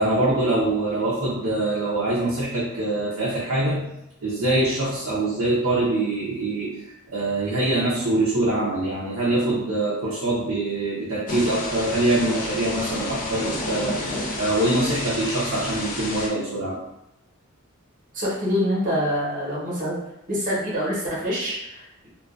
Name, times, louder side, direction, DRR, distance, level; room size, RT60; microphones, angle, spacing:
voice 1, 0.0-3.9 4.2-6.8 7.1-16.8, right 2 dB, 70° right, -7 dB, 0.5 m, -24 dB
Thunder / Rain, 11.3-16.3, left 2 dB, 40° left, 0.5 m, -31 dB
voice 2, 18.1-20.0 20.3-22.1, equal, 40° right, -6 dB, 0.9 m, -26 dB
2.3 x 2.2 x 2.4 m, 0.85 s
head